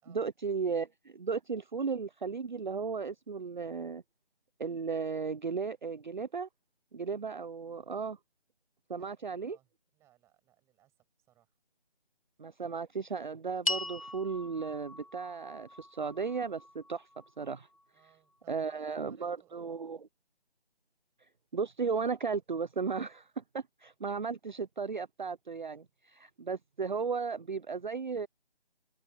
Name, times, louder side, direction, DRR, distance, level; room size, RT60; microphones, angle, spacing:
voice 1, 0.1-4.0 4.6-6.5 6.9-8.2 8.9-9.6 12.4-17.1 17.4-17.7 18.5-20.1 21.5-28.3, right 5 dB, 45° right, 0.7 m, -35 dB
voice 2, 8.9-9.7 9.9-11.5 17.9-19.7, right 13 dB, 10° right, 6.9 m, -67 dB
sound 1, 13.6-18.1, left 1 dB, 35° left, 0.4 m, -40 dB
figure-of-eight pair, 160°, 32 cm